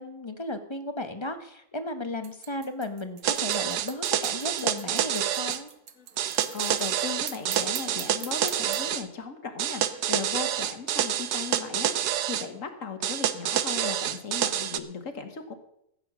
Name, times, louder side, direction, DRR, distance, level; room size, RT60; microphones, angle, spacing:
voice 1, 0.0-5.7, left 2 dB, 25° left, 8 dB, 0.7 m, -35 dB
sound 1, 2.2-8.9, right 8 dB, 55° right, 1.3 m, -43 dB
sound 2, 3.2-5.6 6.2-9.0 9.6-12.5 13.0-14.8, right 11 dB, 75° right, 1.3 m, -28 dB
voice 2, 6.0-15.5, left 5 dB, 50° left, 7 dB, 1.7 m, -37 dB
15.0 x 8.7 x 6.1 m, 0.76 s
omnidirectional pair, 1.8 m